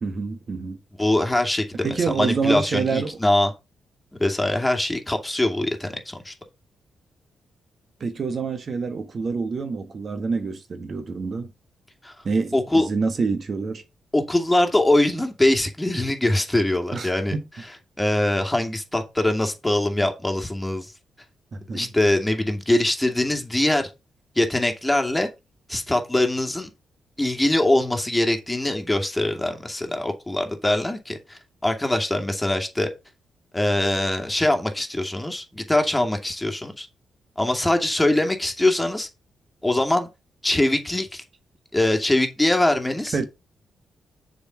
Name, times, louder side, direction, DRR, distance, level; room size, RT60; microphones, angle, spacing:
voice 1, 0.0-0.8 1.8-3.2 8.0-11.5 12.2-13.8 16.9-17.4 21.5-21.9 43.1-43.2, right 4 dB, 50° right, 1.3 m, -27 dB
voice 2, 1.0-3.5 4.1-6.3 12.0-12.1 12.5-12.9 14.1-17.3 18.0-20.9 21.7-23.9 24.4-25.3 25.7-26.7 27.2-32.9 33.5-36.9 37.4-39.1 39.6-40.1 40.4-41.2 41.7-43.2, left 1 dB, 10° left, 2.5 m, -22 dB
6.9 x 5.4 x 5.7 m
hypercardioid pair, 40°, 0 cm